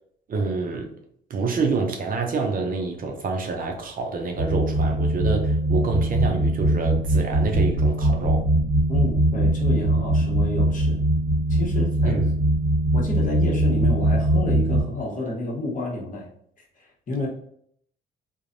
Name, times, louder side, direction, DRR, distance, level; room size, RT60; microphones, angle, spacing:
voice 1, 0.3-0.9 1.3-8.5 12.0-12.2, right 4 dB, 45° right, 0.6 m, -27 dB
sound 1, 4.4-14.8, right 1 dB, 10° right, 1.1 m, -21 dB
voice 2, 8.9-11.0 11.5-12.3 12.9-16.3 16.6-17.3, left 2 dB, 40° left, 1.0 m, -30 dB
3.1 x 2.2 x 2.5 m
cardioid pair, 90°, 20 cm